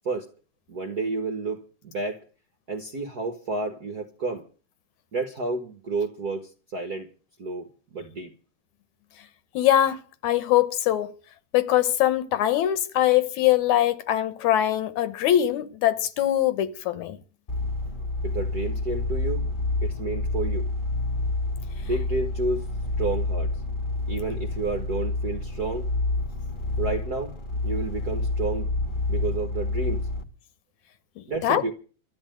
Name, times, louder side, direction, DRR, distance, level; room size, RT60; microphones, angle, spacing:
voice 1, 0.7-2.2 2.7-4.5 5.1-7.1 7.4-7.7 7.9-8.3 18.2-19.4 19.8-20.7 21.8-22.7 23.0-23.6 24.1-25.9 26.8-27.3 27.6-28.7 29.1-30.1 31.3-31.7, right 3 dB, 55° right, 1.0 m, -30 dB
voice 2, 9.5-11.1 11.5-17.2 31.2-31.6, left 12 dB, 75° left, 2.3 m, -22 dB
sound 1, 17.5-30.2, left 2 dB, 45° left, 0.6 m, -28 dB
13.0 x 8.7 x 9.1 m
omnidirectional pair, 3.4 m